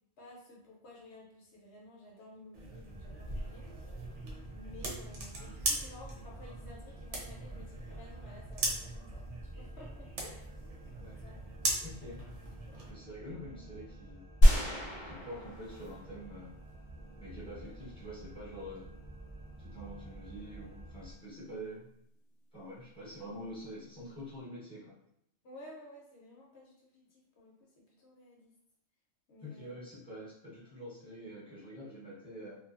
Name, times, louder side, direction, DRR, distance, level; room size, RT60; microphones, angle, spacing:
voice 1, 0.2-3.6 4.5-9.2 9.5-10.5 11.0-12.2 12.7-12.9 17.6-17.7 25.4-28.5 29.3-29.9 30.2-30.3, left 1 dB, 65° left, -3 dB, 0.8 m, -54 dB
sound 1, 2.5-12.9, right 2 dB, 70° right, 0.9 m, -40 dB
sound 2, 2.8-21.1, right 1 dB, 40° right, 0.7 m, -50 dB
voice 2, 11.8-12.2 12.9-14.3 15.0-16.5 17.2-18.9 19.6-21.9 22.5-24.9 29.4-32.6, equal, 5° left, -8 dB, 0.8 m, -46 dB
sound 3, 14.4-16.3 16.7-16.8, equal, 35° left, 0.4 m, -26 dB
2.6 x 2.3 x 2.4 m, 0.76 s
omnidirectional pair, 1.3 m